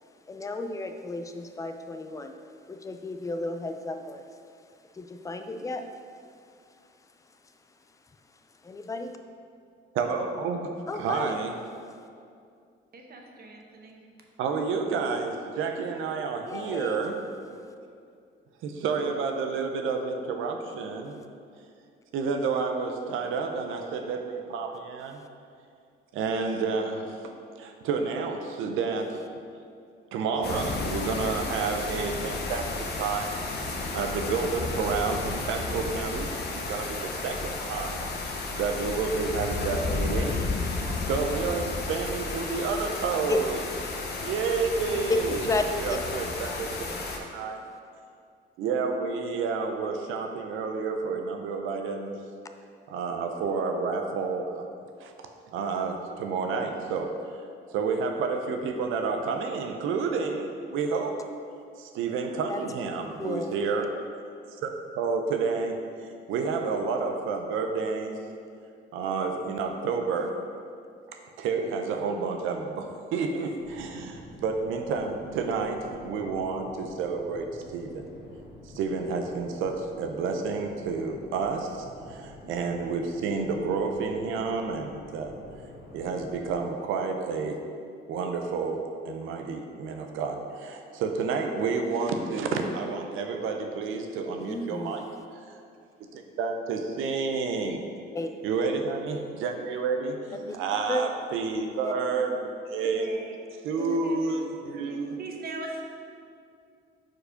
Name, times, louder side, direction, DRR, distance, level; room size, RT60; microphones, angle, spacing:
voice 1, 0.0-9.2 10.9-11.4 16.5-17.1 25.2-25.3 43.2-43.4 45.1-45.2 45.5-46.6 46.9-47.0 62.5-62.6 63.2-63.5 94.4-95.0 98.1-98.3 100.5-100.6 100.9-101.0 101.8-101.9 103.8-104.0, left 2 dB, 15° left, 7 dB, 0.4 m, -34 dB
voice 2, 9.9-11.5 14.4-17.6 18.6-21.2 22.1-25.2 26.1-29.2 30.1-33.3 33.7-40.5 41.0-43.6 44.2-45.4 45.8-46.7 47.3-47.6 48.6-52.1 52.9-54.6 55.0-55.1 55.5-57.1 57.7-61.2 61.8-63.9 64.5-64.7 65.0-68.2 68.9-70.4 71.4-78.1 78.6-85.3 85.9-87.6 88.1-95.0 95.5-95.6 96.1-97.8 98.4-102.3 102.7-103.1 103.6-105.2, right 4 dB, 90° right, 4 dB, 0.6 m, -30 dB
voice 3, 12.9-14.0 102.2-102.4 102.9-103.4 104.0-105.9, right 2 dB, 50° right, 1 dB, 1.0 m, -41 dB
sound 1, 30.4-47.2, left 3 dB, 55° left, 0.9 m, -32 dB
sound 2, 73.6-86.6, left 1 dB, 80° left, 1.4 m, -48 dB
4.7 x 4.4 x 5.0 m, 2.4 s
cardioid pair, 90°, 20 cm